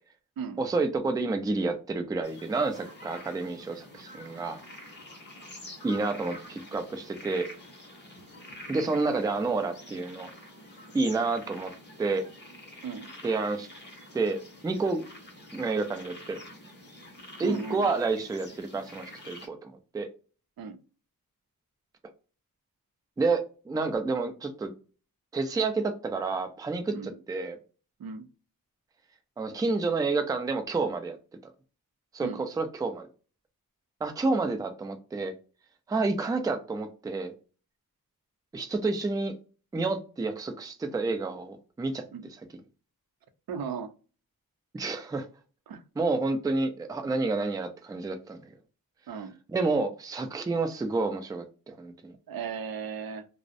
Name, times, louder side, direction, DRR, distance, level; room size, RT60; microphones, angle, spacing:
voice 1, 0.6-4.6 5.8-7.5 8.7-10.3 10.9-11.7 12.0-12.2 13.2-13.7 14.1-15.0 15.5-16.4 17.4-20.1 23.2-24.7 25.3-27.6 29.4-31.2 32.1-32.3 32.6-33.1 34.0-35.3 35.9-37.3 38.5-39.3 39.7-42.0 44.7-45.3 46.0-48.5 49.5-52.1, right 3 dB, 10° right, 7 dB, 0.3 m, -29 dB
sound 1, 2.2-19.5, left 1 dB, 30° left, 0.7 m, -47 dB
voice 2, 17.4-17.9 20.6-20.8 26.9-27.1 28.0-28.3 32.2-32.4 42.1-42.3 43.5-43.9 45.7-45.8 49.1-49.3 52.3-53.3, right 6 dB, 75° right, 9 dB, 0.5 m, -36 dB
2.4 x 2.0 x 2.5 m, 0.35 s
wide cardioid pair, 120°, 36 cm